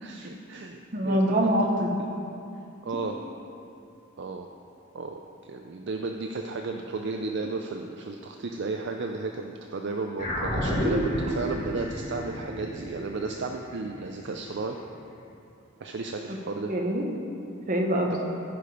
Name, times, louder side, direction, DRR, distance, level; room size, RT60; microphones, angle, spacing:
voice 1, 0.0-0.8 1.0-1.5 2.0-2.1 2.8-3.2 4.2-4.5 4.9-14.8 15.8-16.7, right 3 dB, 55° right, 3 dB, 0.4 m, -33 dB
voice 2, 0.9-1.9 16.3-16.4 16.7-17.1 17.7-18.3, right 1 dB, 40° right, 1 dB, 1.1 m, -25 dB
sound 1, 10.2-14.8, equal, 40° left, 1.9 m, -31 dB
14.5 x 5.0 x 5.0 m, 2.6 s
head